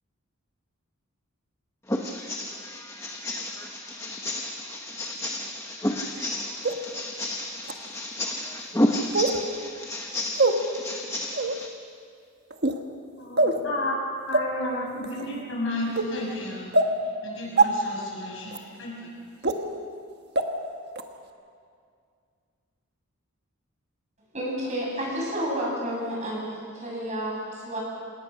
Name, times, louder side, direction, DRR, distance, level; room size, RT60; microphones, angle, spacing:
voice 1, 1.8-11.7, left 1 dB, 15° left, 1.0 m, -31 dB
sound 1, 6.6-6.7 7.6-7.7 9.1-9.4 10.4-10.5 11.3-11.6 12.5-12.8 13.4-13.6 14.3-14.4 15.0-15.2 16.0-16.1 16.7-16.9 17.6-17.7 18.5-18.6 19.4-19.5 20.4-20.5 21.0-21.1, right 3 dB, 50° right, 1.4 m, -22 dB
voice 2, 13.2-14.0 14.3-16.8 17.2-19.1, left 1 dB, 60° left, 6.5 m, -32 dB
voice 3, 24.3-27.8, equal, 30° right, 7.5 m, -30 dB
27.5 x 18.5 x 6.5 m
head